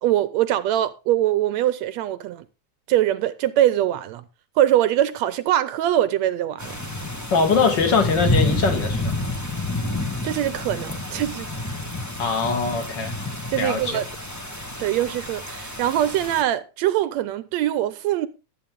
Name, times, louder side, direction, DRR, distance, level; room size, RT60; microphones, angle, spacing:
voice 1, 0.0-2.5 2.9-4.2 4.6-6.8 10.2-11.5 13.5-14.1 14.8-18.3, right 12 dB, 75° right, 1.8 m, -22 dB
sound 1, 6.6-16.4, left 2 dB, 15° left, 0.5 m, -29 dB
voice 2, 7.3-9.1 12.2-13.1 13.6-14.0, left 4 dB, 40° left, 2.9 m, -22 dB
13.5 x 8.8 x 3.7 m
omnidirectional pair, 3.3 m